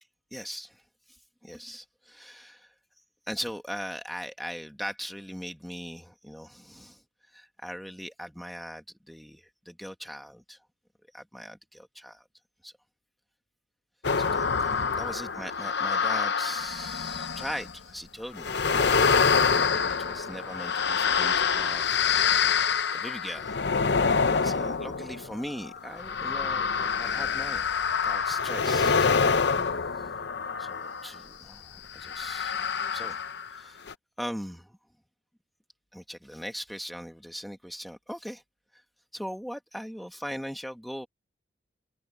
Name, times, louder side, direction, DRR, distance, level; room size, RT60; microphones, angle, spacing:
voice 1, 0.3-2.7 3.3-10.6 11.1-12.3 12.6-12.7 14.2-18.6 19.5-23.6 24.3-27.6 28.0-29.2 29.9-30.1 30.6-32.5 32.9-33.2 33.5-33.9 34.2-34.8 35.9-38.4 38.7-38.8 39.1-41.1, equal, ahead, 1.1 m, -40 dB
sound 1, 14.0-17.7 18.4-31.2 32.0-33.6 33.9-34.0, left 5 dB, 60° left, 0.7 m, -26 dB
head